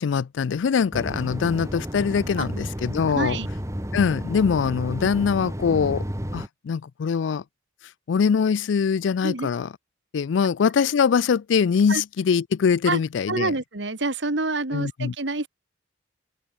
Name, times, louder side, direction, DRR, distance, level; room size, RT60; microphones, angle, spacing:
voice 1, 0.0-3.4 3.9-6.0 6.3-7.4 8.1-9.7 10.1-13.5 14.7-15.1, left 6 dB, 75° left, 0.4 m, -23 dB
sound 1, 0.9-6.5, equal, 15° right, 2.9 m, -32 dB
voice 2, 3.1-3.5 9.2-9.5 11.9-12.0 12.9-13.0 13.3-15.5, right 3 dB, 70° right, 1.9 m, -27 dB
open air
head